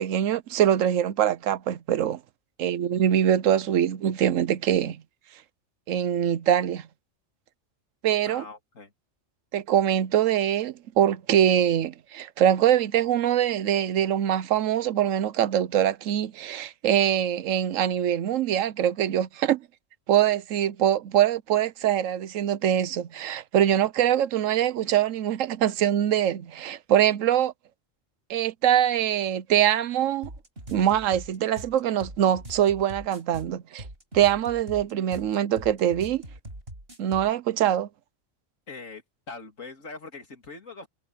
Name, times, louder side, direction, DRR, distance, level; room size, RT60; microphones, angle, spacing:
voice 1, 0.0-2.2 2.6-5.0 5.9-6.9 8.0-8.4 9.5-19.6 20.1-27.5 28.3-30.3 30.7-33.8 34.1-36.2 37.0-37.9, right 10 dB, 90° right, 1.1 m, -23 dB
voice 2, 8.2-8.9 38.7-40.9, left 3 dB, 90° left, 3.1 m, -42 dB
sound 1, 30.2-37.3, right 1 dB, 50° right, 7.3 m, -42 dB
omnidirectional pair, 1.3 m